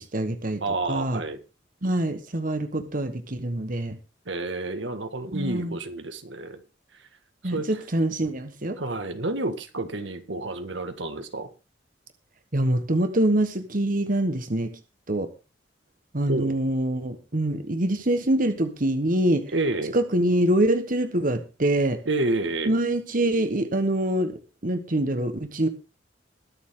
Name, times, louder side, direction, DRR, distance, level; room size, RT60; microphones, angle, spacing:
voice 1, 0.0-0.6 0.9-1.2 1.8-4.0 5.3-5.8 7.4-8.8 12.5-14.7 15.1-15.3 16.1-19.5 19.9-22.0 22.7-24.3 24.6-25.7, right 1 dB, 45° right, 8 dB, 1.3 m, -25 dB
voice 2, 0.6-1.4 4.3-6.6 6.9-7.1 7.4-7.8 8.8-11.5 16.3-16.5 19.5-20.0 22.1-22.7, right 2 dB, 85° right, 8 dB, 1.8 m, -29 dB
22.0 x 7.3 x 3.8 m, 0.31 s
head